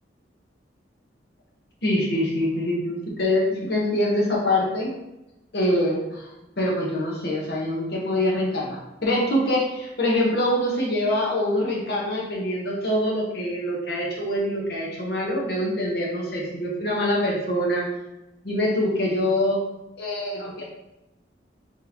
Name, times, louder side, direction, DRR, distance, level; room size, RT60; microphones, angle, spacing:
voice 1, 1.8-4.9 5.5-6.3 6.6-17.9 18.4-19.6 20.0-20.6, left 1 dB, 60° left, -3 dB, 1.0 m, -24 dB
4.1 x 3.2 x 2.8 m, 0.95 s
head